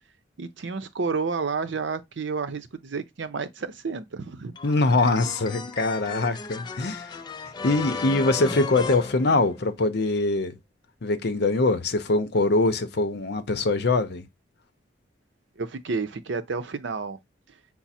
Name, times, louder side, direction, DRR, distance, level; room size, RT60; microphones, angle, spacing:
voice 1, 0.4-4.5 15.6-17.2, right 4 dB, 75° right, 0.6 m, -30 dB
voice 2, 4.6-7.2 7.6-10.6 11.0-14.3, left 2 dB, 60° left, 0.7 m, -23 dB
sound 1, 4.6-9.9, left 4 dB, 25° left, 0.3 m, -35 dB
5.9 x 2.0 x 4.1 m
head